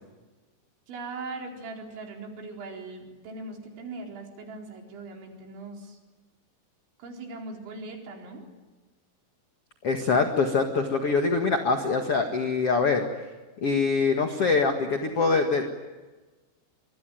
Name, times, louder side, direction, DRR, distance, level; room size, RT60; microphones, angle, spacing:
voice 1, 0.9-6.0 7.0-8.5, right 3 dB, 90° right, 1 dB, 6.7 m, -40 dB
voice 2, 9.8-13.1 13.6-15.7, left 4 dB, 50° left, 4 dB, 2.0 m, -24 dB
25.5 x 23.0 x 9.3 m, 1.2 s
omnidirectional pair, 5.2 m